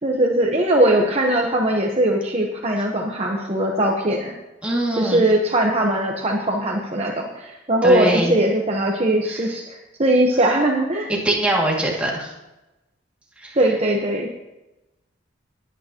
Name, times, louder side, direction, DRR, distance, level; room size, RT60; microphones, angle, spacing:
voice 1, 0.0-4.3 5.0-11.1 13.6-14.3, right 1 dB, 35° right, 0 dB, 1.1 m, -20 dB
voice 2, 4.6-5.2 7.8-8.3 11.1-12.3 13.4-13.6, right 1 dB, 5° right, -3 dB, 2.3 m, -22 dB
20.0 x 9.4 x 3.0 m, 1.0 s
head